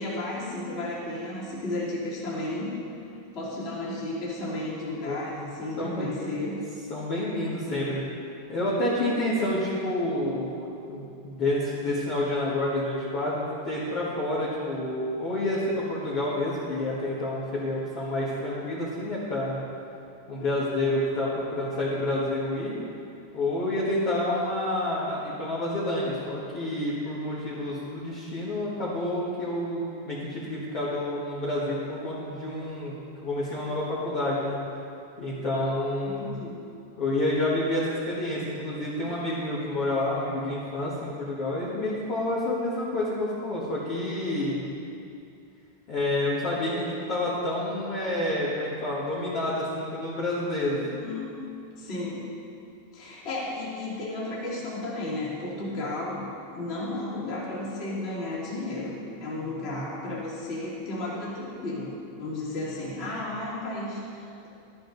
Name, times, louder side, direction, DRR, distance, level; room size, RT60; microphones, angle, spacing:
voice 1, 0.0-2.7 3.3-6.6 36.0-36.6 50.7-51.4 51.8-52.3 52.9-64.5, left 2 dB, 25° left, -7 dB, 1.2 m, -33 dB
voice 2, 5.8-6.1 6.9-8.0 8.5-19.6 20.3-22.8 23.3-34.6 35.2-36.3 37.0-44.6 45.9-50.8, left 1 dB, 75° left, -9 dB, 1.3 m, -29 dB
13.0 x 13.0 x 4.0 m, 2.6 s
omnidirectional pair, 5.5 m